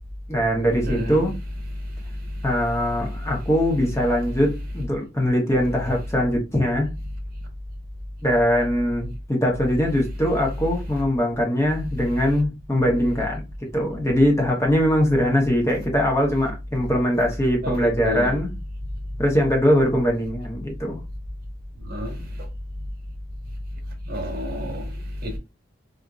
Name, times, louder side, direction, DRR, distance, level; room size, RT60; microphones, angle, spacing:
voice 1, 0.3-1.3 2.4-6.9 8.2-13.4 13.7-18.5 19.2-21.0, equal, 15° left, 0.9 m, -21 dB
voice 2, 0.8-1.2 17.6-18.4 21.9-22.1 24.1-24.9 25.2-25.4, equal, 50° right, 1.2 m, -28 dB
4.2 x 2.5 x 2.4 m
head